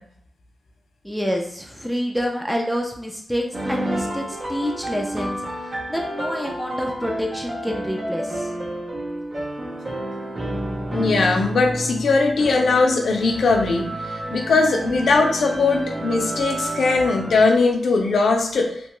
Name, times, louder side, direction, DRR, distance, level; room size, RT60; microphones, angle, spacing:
voice 1, 1.0-5.4 5.9-8.5, equal, ahead, 0 dB, 0.4 m, -27 dB
sound 1, 3.5-17.4, right 1 dB, 45° right, 0.7 m, -30 dB
voice 2, 10.9-13.9 14.3-18.7, left 3 dB, 75° left, 2 dB, 0.5 m, -19 dB
2.9 x 2.2 x 3.0 m, 0.66 s
wide cardioid pair, 140°, 0 cm